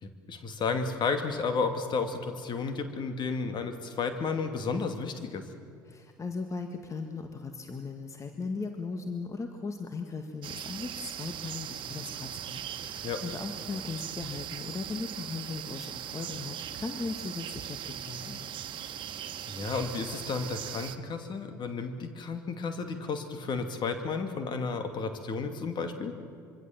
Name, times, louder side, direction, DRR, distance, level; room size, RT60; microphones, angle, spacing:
voice 1, 0.0-5.4 13.0-13.2 19.5-26.2, left 4 dB, 45° left, 7 dB, 2.4 m, -32 dB
voice 2, 5.9-18.5, left 4 dB, 30° left, 5 dB, 1.9 m, -38 dB
sound 1, 10.4-21.0, right 10 dB, 50° right, 1.5 m, -39 dB
25.5 x 23.5 x 7.3 m, 2.4 s
hypercardioid pair, 60°, 11 cm